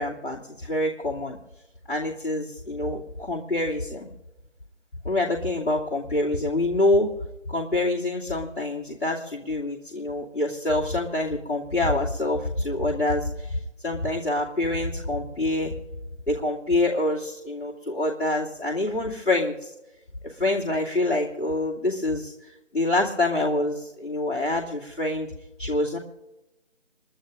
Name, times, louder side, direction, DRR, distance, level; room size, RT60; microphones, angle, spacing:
voice 1, 0.0-1.4 1.9-4.1 5.0-7.1 7.5-15.7 16.3-19.7 20.2-22.3 22.7-25.3 25.6-26.0, left 2 dB, 85° left, -6 dB, 2.8 m, -26 dB
30.0 x 11.5 x 2.6 m, 0.97 s
figure-of-eight pair, 170°, 36 cm